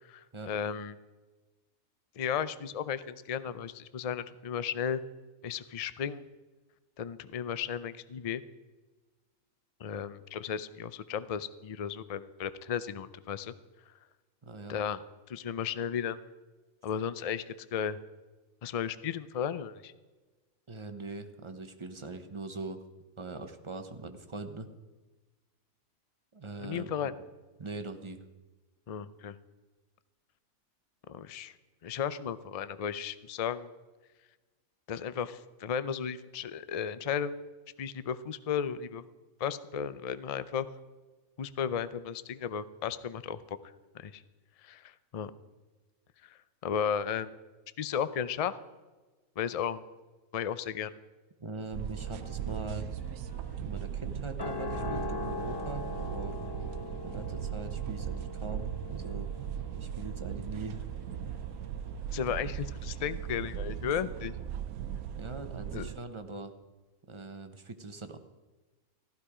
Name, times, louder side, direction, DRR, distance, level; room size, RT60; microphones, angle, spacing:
voice 1, 0.1-1.0 2.2-5.0 5.4-6.2 7.0-8.4 9.8-13.5 14.7-15.0 15.3-16.2 16.8-18.0 18.6-19.9 26.6-27.1 28.9-29.4 31.1-31.5 31.8-33.7 34.9-37.4 37.8-39.0 39.4-40.7 41.4-43.4 43.9-44.2 44.6-45.3 46.2-47.3 47.8-48.6 49.4-49.8 50.3-50.9 62.1-64.3 65.7-65.9, left 8 dB, 65° left, 14 dB, 0.3 m, -34 dB
voice 2, 14.4-14.8 20.7-22.8 23.2-24.7 26.3-26.9 27.6-28.2 51.4-52.9 53.6-56.4 57.0-59.3 59.6-60.9 65.2-66.5 67.1-68.2, right 3 dB, 25° right, 7 dB, 0.8 m, -41 dB
sound 1, 51.7-66.0, right 9 dB, 85° right, 1.1 m, -38 dB
sound 2, 52.0-62.3 62.6-62.7, left 4 dB, 20° left, 0.8 m, -43 dB
15.0 x 13.0 x 4.9 m, 1.2 s
omnidirectional pair, 1.5 m